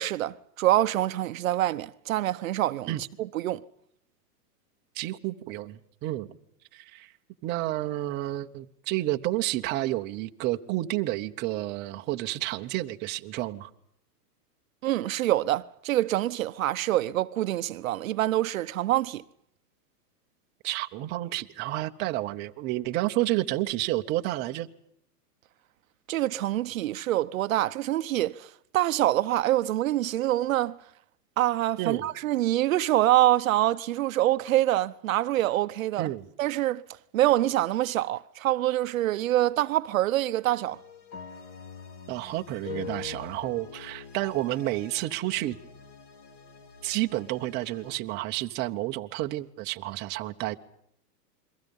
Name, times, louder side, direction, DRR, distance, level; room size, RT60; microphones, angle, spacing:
voice 1, 0.0-2.9 3.2-3.6 14.8-19.2 26.1-28.5 28.7-30.8 31.4-36.1 36.4-36.8 37.1-40.8, right 14 dB, 55° right, 0.9 m, -25 dB
voice 2, 4.9-6.3 6.7-7.1 7.4-13.7 20.6-24.7 31.8-32.1 36.0-36.2 42.1-45.6 46.8-50.6, right 16 dB, 20° right, 0.9 m, -30 dB
sound 1, 40.6-48.0, left 7 dB, 50° left, 4.9 m, -44 dB
29.5 x 23.0 x 5.4 m
hypercardioid pair, 155°, 47 cm